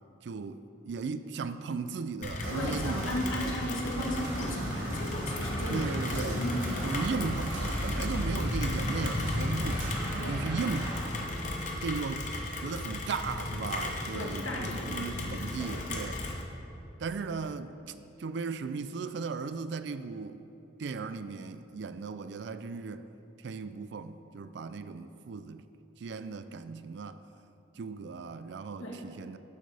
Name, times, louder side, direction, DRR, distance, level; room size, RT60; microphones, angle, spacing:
voice 1, 0.2-3.5 5.7-6.4 6.8-9.9 10.1-10.9 11.8-12.3 12.6-16.2 17.0-20.4 20.8-23.1 23.4-25.7 26.0-27.2 27.8-29.4, right 4 dB, 60° right, 12 dB, 0.3 m, -36 dB
Rain, 2.2-16.4, left 1 dB, 35° left, 0.9 m, -34 dB
sound 1, 2.4-16.0, right 1 dB, 85° right, 2.3 m, -41 dB
voice 2, 2.5-7.3 10.2-10.5 14.1-15.4 28.8-29.0, equal, 85° left, -1 dB, 1.4 m, -36 dB
11.5 x 7.6 x 3.4 m, 2.9 s
head